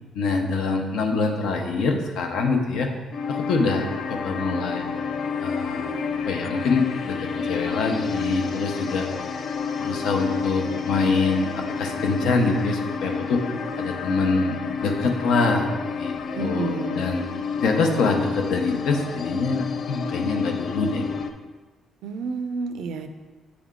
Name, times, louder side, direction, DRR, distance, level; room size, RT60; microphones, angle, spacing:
voice 1, 0.1-2.9 3.3-4.8 5.4-6.0 6.3-9.1 9.8-13.4 13.8-14.6 14.8-15.7 16.0-17.2 17.6-21.1, left 3 dB, 75° left, 3 dB, 0.8 m, -25 dB
sound 1, 3.1-21.3, left 5 dB, 45° left, 0.4 m, -29 dB
voice 2, 16.4-17.1 22.0-23.1, right 4 dB, 90° right, 8 dB, 0.5 m, -30 dB
8.5 x 3.5 x 3.7 m, 1.3 s
cardioid pair, 160°, 0 cm